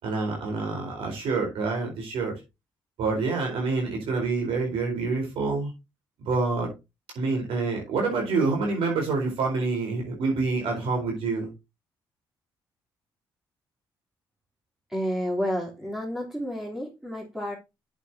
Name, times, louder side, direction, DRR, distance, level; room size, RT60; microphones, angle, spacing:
voice 1, 0.0-2.3 3.0-5.7 6.3-6.7 7.1-11.5, right 3 dB, 75° right, 4.3 m, -27 dB
voice 2, 14.9-17.5, equal, 5° right, 3.5 m, -30 dB
8.3 x 8.0 x 2.8 m
supercardioid pair, 60°, 9 cm